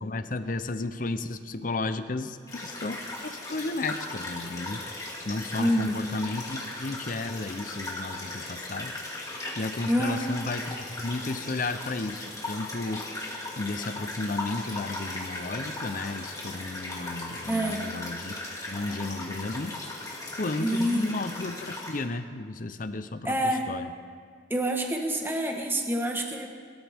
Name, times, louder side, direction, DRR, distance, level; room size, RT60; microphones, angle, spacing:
voice 1, 0.0-4.8 5.3-9.0 9.6-18.3 18.7-19.8 20.4-23.9, left 2 dB, 45° left, 10 dB, 0.7 m, -33 dB
sound 1, 2.5-22.0, left 2 dB, 20° left, 2.2 m, -37 dB
voice 2, 5.6-6.0 9.9-10.3 17.5-17.8 20.6-21.1 23.2-23.7 24.5-26.5, equal, 10° right, 2 dB, 1.3 m, -27 dB
23.5 x 13.0 x 3.6 m, 2.1 s
head